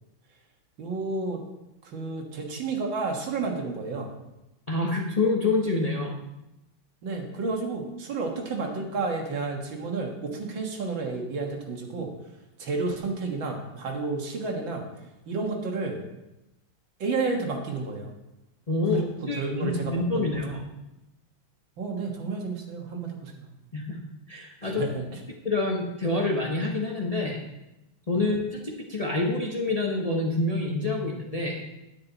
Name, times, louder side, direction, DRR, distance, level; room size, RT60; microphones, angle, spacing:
voice 1, 0.8-1.4 1.8-4.1 7.0-12.1 12.6-14.8 15.3-16.0 17.0-18.1 18.9-20.3 21.8-23.5 24.6-25.0 28.1-28.3, right 3 dB, 75° right, 1 dB, 2.3 m, -31 dB
voice 2, 4.7-6.1 18.7-20.6 23.7-24.0 24.3-24.8 25.4-27.4 28.1-31.6, left 2 dB, 25° left, -1 dB, 1.0 m, -27 dB
10.0 x 9.8 x 4.0 m, 0.95 s
omnidirectional pair, 2.1 m